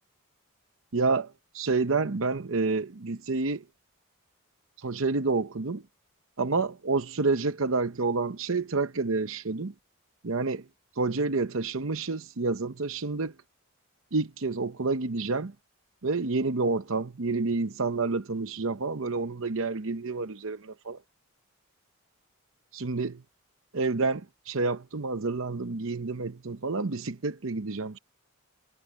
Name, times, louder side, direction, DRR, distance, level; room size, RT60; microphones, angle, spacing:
voice 1, 0.9-3.6 4.8-5.8 6.4-9.7 10.2-10.6 11.0-13.3 14.1-15.5 16.0-21.0 22.7-23.2 23.7-28.0, right 3 dB, 60° right, 0.8 m, -29 dB
head